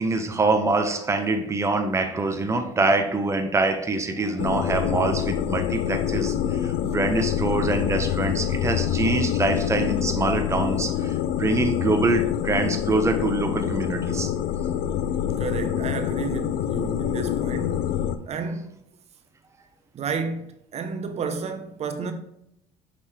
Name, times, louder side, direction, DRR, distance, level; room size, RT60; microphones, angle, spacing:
voice 1, 0.0-14.3, right 3 dB, 20° right, 0.8 m, -25 dB
sound 1, 4.4-18.2, left 10 dB, 75° left, 0.5 m, -26 dB
voice 2, 15.4-17.9 18.3-18.7 19.9-22.1, right 5 dB, 50° right, 1.0 m, -31 dB
6.5 x 5.2 x 3.3 m
supercardioid pair, 70°, 14 cm